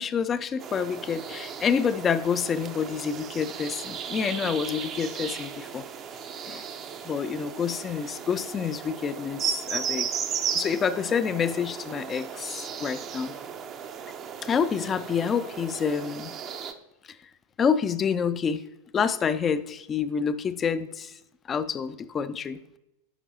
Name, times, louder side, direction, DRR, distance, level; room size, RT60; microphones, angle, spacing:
voice 1, 0.0-5.8 6.5-6.6 7.0-10.1 10.5-13.3 14.4-16.3 17.6-18.6 18.9-21.1 21.5-22.6, left 6 dB, 25° left, 14 dB, 0.4 m, -28 dB
sound 1, 0.6-16.7, right 7 dB, 30° right, 0.5 m, -35 dB
11.0 x 5.3 x 2.7 m, 0.90 s
figure-of-eight pair, 90°, 0 cm